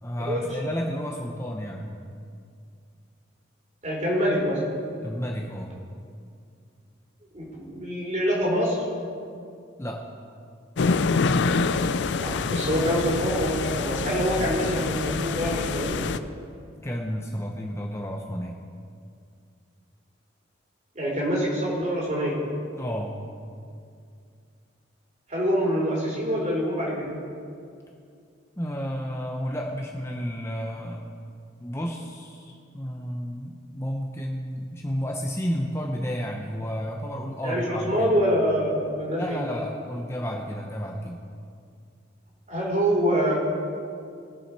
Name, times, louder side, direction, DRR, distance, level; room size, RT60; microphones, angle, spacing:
voice 1, 0.0-1.9 5.0-5.8 9.8-10.0 16.8-18.6 22.8-23.2 28.6-31.1 31.6-38.1 39.2-41.2, equal, 15° left, 0 dB, 0.7 m, -31 dB
voice 2, 3.8-4.6 7.3-8.8 12.2-16.0 20.9-22.4 25.3-27.2 37.4-39.4 42.5-43.4, equal, 40° right, -3 dB, 3.3 m, -25 dB
sound 1, 10.8-16.2, left 4 dB, 60° left, 0.4 m, -26 dB
21.0 x 7.1 x 4.6 m, 2.3 s
head